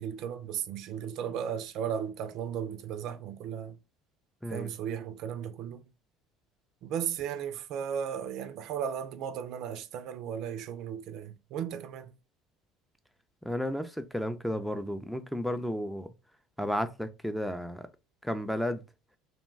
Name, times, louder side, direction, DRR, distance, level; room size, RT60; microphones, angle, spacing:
voice 1, 0.0-3.8 4.5-5.9 6.8-12.1, right 8 dB, 65° right, 0.3 m, -35 dB
voice 2, 13.4-16.1 16.6-17.9 18.2-18.8, equal, ahead, 0.4 m, -33 dB
2.6 x 2.2 x 3.1 m
hypercardioid pair, 75°, 0 cm